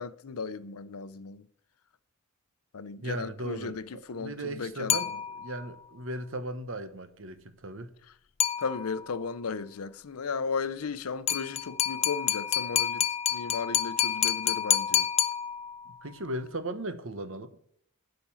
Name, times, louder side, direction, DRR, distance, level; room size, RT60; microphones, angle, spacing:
voice 1, 0.0-1.5 2.7-5.0 8.6-13.0 13.3-15.1, left 5 dB, 90° left, 0.6 m, -35 dB
voice 2, 3.0-3.8 4.1-7.9 16.0-17.6, right 1 dB, 65° right, 1.0 m, -37 dB
sound 1, 4.9-5.7 8.4-9.2 11.3-16.0, left 10 dB, 30° left, 0.5 m, -28 dB
8.8 x 5.2 x 7.3 m
head